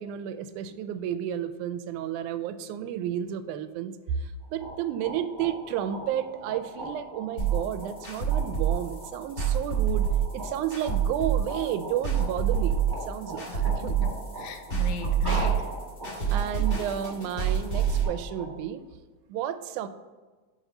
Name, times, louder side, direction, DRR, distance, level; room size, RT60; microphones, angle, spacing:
voice 1, 0.0-10.1 10.3-12.8 13.1-14.0 16.3-18.8 19.3-19.9, right 10 dB, 90° right, 11 dB, 2.0 m, -32 dB
sound 1, 4.4-18.5, right 1 dB, 25° right, 0.5 m, -40 dB
sound 2, 7.4-18.0, right 8 dB, 35° left, 2.8 m, -27 dB
voice 2, 13.5-15.7 16.3-16.4, left 4 dB, 80° left, 7 dB, 2.0 m, -39 dB
6.2 x 5.0 x 5.4 m, 1.3 s
omnidirectional pair, 3.4 m